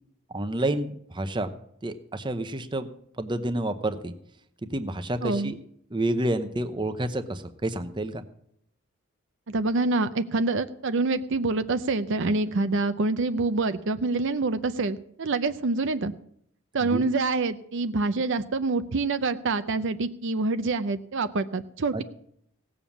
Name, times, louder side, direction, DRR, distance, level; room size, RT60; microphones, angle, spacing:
voice 1, 0.3-1.6 1.8-2.9 3.2-4.1 4.7-5.6 5.9-8.2 16.8-17.1 21.9-22.0, right 1 dB, 20° right, 10 dB, 0.8 m, -29 dB
voice 2, 5.2-5.5 9.5-16.1 16.7-22.0, right 3 dB, 60° right, 11 dB, 0.6 m, -26 dB
17.0 x 7.2 x 7.2 m, 0.71 s
head